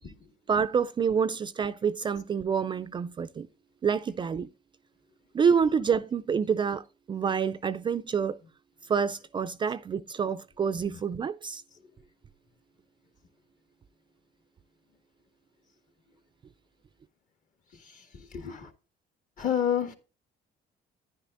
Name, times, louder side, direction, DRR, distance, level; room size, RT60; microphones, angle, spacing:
voice 1, 0.5-3.5 3.8-4.5 5.3-8.4 8.9-11.6, right 6 dB, 30° right, 0.3 m, -27 dB
voice 2, 17.7-18.7 19.4-19.9, left 9 dB, 50° left, 1.8 m, -30 dB
10.0 x 9.9 x 2.5 m
cardioid pair, 110°, 17 cm